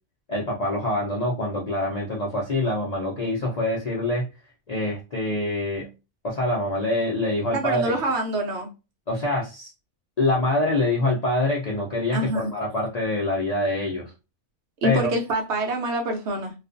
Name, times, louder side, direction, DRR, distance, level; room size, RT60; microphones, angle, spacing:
voice 1, 0.3-4.3 4.7-5.9 6.2-8.0 9.1-9.7 10.2-14.1 14.8-15.1, left 1 dB, 55° left, -3 dB, 0.4 m, -25 dB
voice 2, 7.5-8.7 12.1-12.5 14.8-16.5, right 1 dB, 65° right, 2 dB, 0.8 m, -26 dB
2.4 x 2.3 x 2.5 m, 0.28 s
omnidirectional pair, 1.4 m